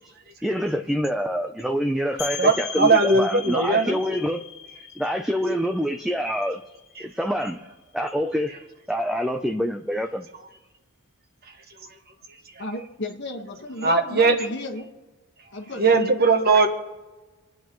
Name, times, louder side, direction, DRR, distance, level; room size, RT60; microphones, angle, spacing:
voice 1, 0.4-4.4 5.0-6.6 7.0-7.6 7.9-8.5 8.9-10.3, equal, ahead, 4 dB, 0.4 m, -26 dB
sound 1, 2.2-7.7, left 7 dB, 80° left, 1.9 m, -39 dB
voice 2, 2.4-4.0 13.8-14.3 15.8-16.7, right 3 dB, 45° right, 5 dB, 1.3 m, -19 dB
voice 3, 12.6-14.9 15.5-16.0, left 2 dB, 50° left, 3 dB, 1.4 m, -34 dB
27.5 x 9.3 x 3.1 m, 1.2 s
head